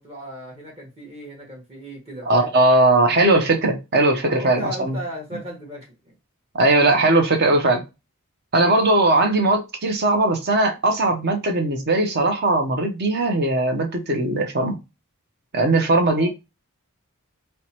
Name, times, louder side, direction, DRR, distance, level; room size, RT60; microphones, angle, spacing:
voice 1, 0.0-2.5 4.2-5.9 16.1-16.3, equal, 30° right, -2 dB, 1.1 m, -36 dB
voice 2, 2.3-5.0 6.5-7.8 8.5-14.8 15.5-16.3, right 2 dB, 50° right, 4 dB, 0.7 m, -19 dB
4.5 x 2.2 x 2.8 m, 0.25 s
head